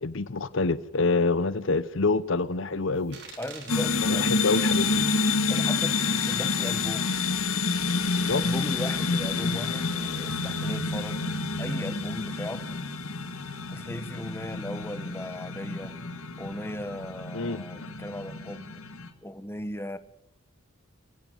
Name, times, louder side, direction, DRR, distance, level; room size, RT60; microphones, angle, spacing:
voice 1, 0.0-3.2 4.0-5.1 8.1-8.4 17.3-17.9, left 3 dB, 65° left, 16 dB, 0.8 m, -27 dB
sound 1, 3.0-8.6, right 5 dB, 55° right, 4.7 m, -47 dB
voice 2, 3.4-4.4 5.5-7.1 8.3-11.2 11.6-12.7 13.7-16.0 16.4-18.8 19.2-20.0, left 1 dB, 10° left, 12 dB, 1.2 m, -37 dB
sound 2, 3.7-19.1, left 4 dB, 85° left, 2.3 m, -28 dB
25.0 x 15.5 x 9.2 m, 0.77 s
head